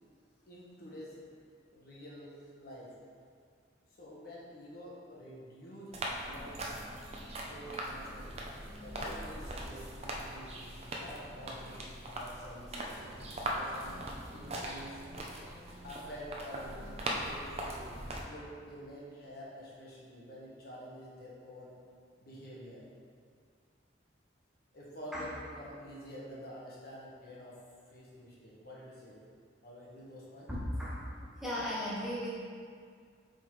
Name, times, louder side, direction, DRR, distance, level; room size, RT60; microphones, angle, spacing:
voice 1, 0.5-1.2 1.7-2.9 4.0-6.6 7.4-8.5 8.8-10.6 10.9-13.0 13.5-14.1 14.3-15.0 15.8-17.9 18.2-21.7 22.2-22.8 24.7-27.6 27.9-29.2 29.6-30.5, equal, 50° left, -6 dB, 1.3 m, -48 dB
sound 1, 5.9-18.2, right 1 dB, 35° right, 0.6 m, -40 dB
voice 2, 30.5-31.1 31.4-32.3, equal, ahead, -8 dB, 0.9 m, -36 dB
7.6 x 4.1 x 3.2 m, 2.1 s
head